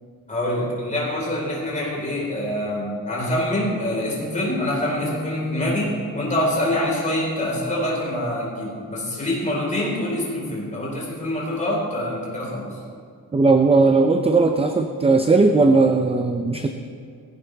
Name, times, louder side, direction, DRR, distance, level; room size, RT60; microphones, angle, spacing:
voice 1, 0.3-12.7, left 1 dB, 20° left, -4 dB, 4.3 m, -25 dB
voice 2, 13.3-16.7, right 3 dB, 15° right, 5 dB, 0.5 m, -17 dB
18.5 x 16.0 x 3.4 m, 2.2 s
wide cardioid pair, 175°, 37 cm